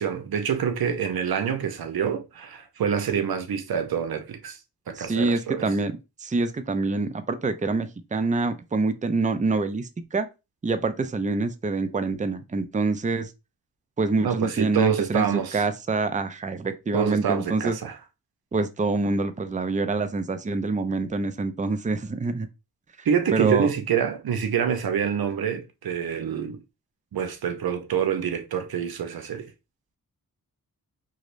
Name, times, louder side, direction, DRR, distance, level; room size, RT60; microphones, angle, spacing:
voice 1, 0.0-4.6 4.9-5.7 14.2-15.6 16.9-18.0 23.0-26.6 27.1-29.5, right 7 dB, 70° right, 0.7 m, -26 dB
voice 2, 5.0-10.3 10.6-13.3 14.0-17.8 18.5-22.5 23.3-23.7, right 3 dB, 20° right, 0.5 m, -26 dB
4.8 x 2.0 x 2.5 m
cardioid pair, 50°, 38 cm